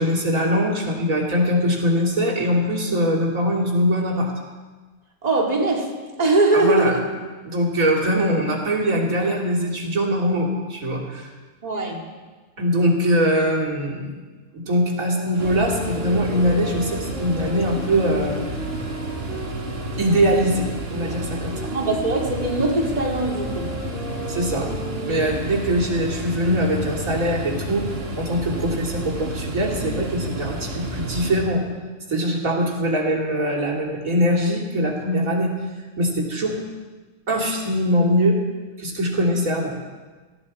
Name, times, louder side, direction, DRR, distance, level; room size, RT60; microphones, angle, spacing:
voice 1, 0.0-4.3 6.5-7.0 7.4-11.3 12.6-14.1 14.5-18.5 20.0-21.7 24.3-24.7 25.1-27.8 28.1-31.7 32.1-35.5 36.0-36.6 37.3-38.4 38.8-39.8, equal, 85° right, -1 dB, 3.2 m, -22 dB
voice 2, 5.2-5.9 6.2-7.0 11.6-12.0 21.7-23.8, right 2 dB, 30° right, -1 dB, 2.2 m, -21 dB
sound 1, 14.8-20.3 20.9-26.1, left 1 dB, 45° left, 6.1 m, -35 dB
sound 2, 15.4-31.4, right 1 dB, 50° right, 1.8 m, -31 dB
18.0 x 15.0 x 4.3 m, 1.3 s
omnidirectional pair, 1.4 m